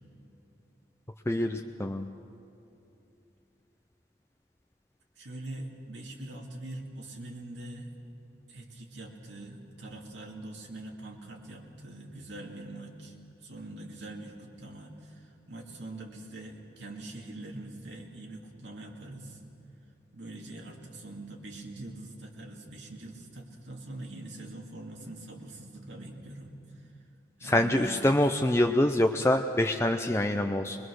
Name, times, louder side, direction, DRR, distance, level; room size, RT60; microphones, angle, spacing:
voice 1, 1.3-2.1 27.4-30.8, left 1 dB, 15° left, 5 dB, 0.5 m, -25 dB
voice 2, 5.2-7.9 8.5-19.4 20.1-26.9 27.4-28.5, right 2 dB, 85° right, -1 dB, 2.3 m, -43 dB
23.0 x 21.5 x 6.4 m, 2.8 s
head